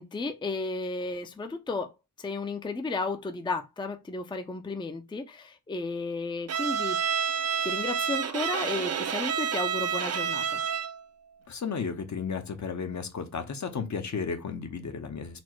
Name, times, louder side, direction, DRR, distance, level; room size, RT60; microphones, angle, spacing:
voice 1, 0.0-1.9 2.2-7.0 7.6-10.6, left 3 dB, 15° left, 0.4 m, -33 dB
Bowed string instrument, 6.5-11.0, right 7 dB, 50° right, 0.4 m, -29 dB
voice 2, 11.5-15.4, left 5 dB, 60° left, 0.8 m, -33 dB
4.2 x 2.1 x 4.4 m
wide cardioid pair, 115°, 32 cm